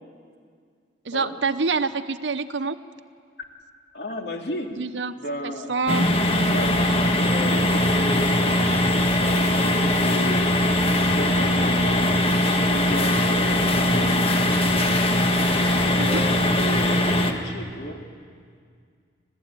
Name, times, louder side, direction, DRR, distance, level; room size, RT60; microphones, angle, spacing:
voice 1, 1.1-2.8 4.8-5.1 5.4-6.0 6.3-6.6 16.0-16.2, right 4 dB, 75° right, 8 dB, 0.8 m, -26 dB
voice 2, 3.9-4.7 5.2-5.7 6.4-8.7 9.1-10.7 11.1-14.2 16.0-18.0, left 1 dB, 65° left, 2 dB, 2.8 m, -33 dB
sound 1, 5.9-17.3, left 1 dB, 30° left, 1.6 m, -21 dB
26.5 x 15.0 x 8.9 m, 2.1 s
head